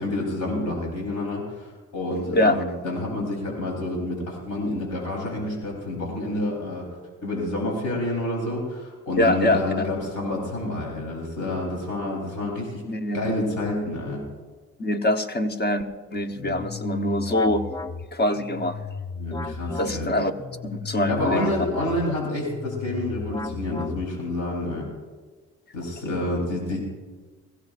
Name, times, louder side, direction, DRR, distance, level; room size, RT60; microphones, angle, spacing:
voice 1, 0.0-6.9 7.2-12.8 13.1-14.2 16.4-16.5 19.2-20.1 21.0-24.9 25.7-26.8, left 1 dB, 85° left, -2 dB, 4.1 m, -28 dB
voice 2, 9.2-9.9 12.9-13.2 14.8-17.7 18.1-18.8 19.8-20.3 20.6-21.5, left 1 dB, 35° left, 7 dB, 1.2 m, -24 dB
sound 1, 16.3-24.4, left 4 dB, 15° left, 0.4 m, -35 dB
22.0 x 16.0 x 2.6 m, 1.4 s
cardioid pair, 90°, 30 cm